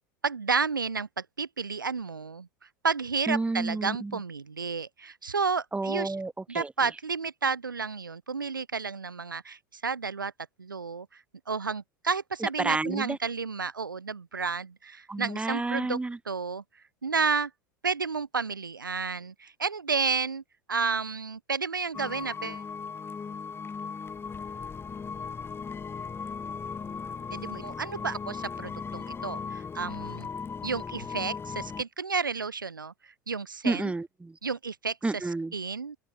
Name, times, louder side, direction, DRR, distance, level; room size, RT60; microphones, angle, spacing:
voice 1, 0.2-2.5 2.8-6.1 6.5-10.3 10.6-11.2 11.5-16.0 16.3-16.6 17.0-17.5 17.8-20.4 20.7-22.6 27.3-30.3 30.6-33.9 34.4-35.0 35.5-36.0, right 5 dB, 85° right, 1.5 m, -31 dB
voice 2, 3.3-4.2 5.7-6.7 12.4-13.2 15.1-16.2 33.6-34.4 35.0-35.5, right 3 dB, 10° right, 3.2 m, -30 dB
sound 1, 21.9-31.8, left 5 dB, 20° left, 5.0 m, -37 dB
open air
figure-of-eight pair, 80°, 11 cm